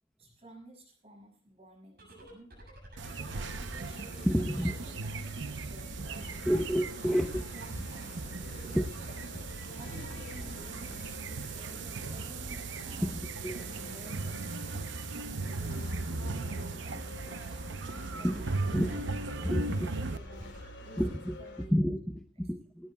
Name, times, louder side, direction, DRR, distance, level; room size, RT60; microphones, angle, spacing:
voice 1, 0.2-2.5 3.1-6.5 7.0-7.2 7.5-9.4 9.8-13.2 13.7-15.1 15.5-17.6 18.1-19.0 19.5-21.7, equal, 30° right, 1 dB, 6.4 m, -53 dB
sound 1, 1.9-21.6, right 1 dB, 50° right, 7.2 m, -50 dB
sound 2, 3.0-21.7, left 2 dB, 75° left, 3.6 m, -50 dB
zoo amazonwalk, 3.0-20.2, right 3 dB, 70° right, 0.7 m, -38 dB
voice 2, 4.2-4.7 6.5-7.4 8.7-8.8 13.0-13.7 17.9-18.4 18.7-18.9 19.4-19.7 21.0-22.9, equal, 5° left, 4 dB, 0.7 m, -30 dB
19.5 x 18.0 x 2.3 m, 0.41 s
head